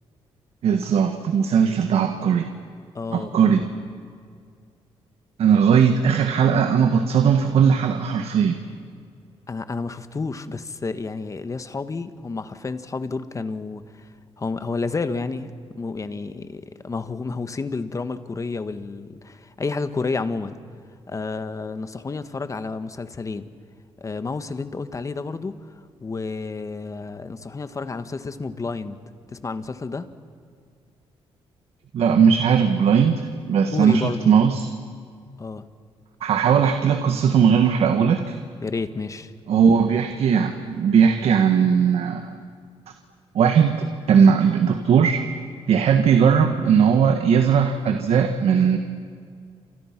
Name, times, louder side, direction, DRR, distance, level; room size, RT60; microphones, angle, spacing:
voice 1, 0.6-2.5 3.1-3.6 5.4-8.6 31.9-34.7 36.2-38.4 39.5-42.3 43.3-45.2 45.7-48.8, right 7 dB, 70° right, 7 dB, 1.5 m, -18 dB
voice 2, 2.9-3.4 9.5-13.8 14.4-20.6 21.1-23.5 24.0-25.6 26.0-29.0 29.3-30.1 33.7-34.3 35.4-35.7 38.6-39.3, left 4 dB, 30° left, 11 dB, 1.5 m, -30 dB
29.5 x 27.0 x 6.0 m, 2.2 s
cardioid pair, 90°, 11 cm